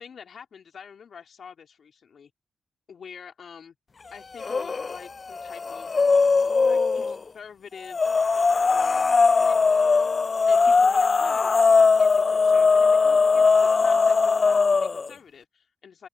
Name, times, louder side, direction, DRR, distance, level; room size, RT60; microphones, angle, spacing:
voice 1, 0.0-2.3 2.9-3.7 4.1-5.9 6.6-8.1 8.7-10.1 10.5-16.1, left 7 dB, 70° left, 2.8 m, -45 dB
sound 1, 4.4-5.0 5.3-7.2 7.9-15.1, left 4 dB, 50° left, 0.3 m, -20 dB
open air
supercardioid pair, 45°, 0 cm